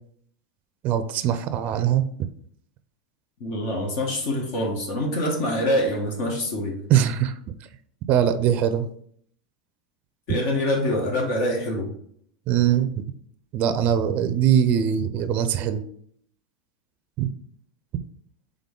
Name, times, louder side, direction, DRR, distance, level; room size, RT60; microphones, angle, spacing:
voice 1, 0.8-2.0 6.9-7.3 8.1-8.9 12.5-12.9 13.5-15.8 17.2-17.3, right 9 dB, 45° right, 11 dB, 0.4 m, -21 dB
voice 2, 3.4-6.9 10.3-11.9, left 1 dB, 60° left, 0 dB, 1.2 m, -25 dB
3.7 x 3.6 x 3.6 m, 0.64 s
hypercardioid pair, 110°, 4 cm